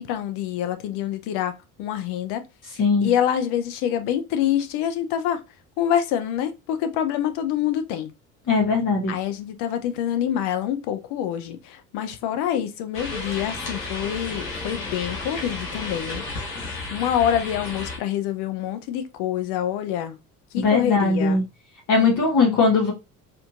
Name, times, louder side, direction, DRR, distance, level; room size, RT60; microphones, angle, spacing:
voice 1, 0.0-1.5 1.8-2.4 2.8-5.4 5.8-8.1 9.1-16.2 16.9-20.2 20.5-21.4, left 10 dB, 60° left, 0.7 m, -26 dB
voice 2, 2.8-3.1 8.5-9.1 20.6-21.4 21.9-22.9, left 4 dB, 40° left, 1.3 m, -19 dB
sound 1, 12.9-18.0, left 3 dB, 90° left, 1.4 m, -33 dB
4.3 x 2.7 x 2.5 m
hypercardioid pair, 70°, 46 cm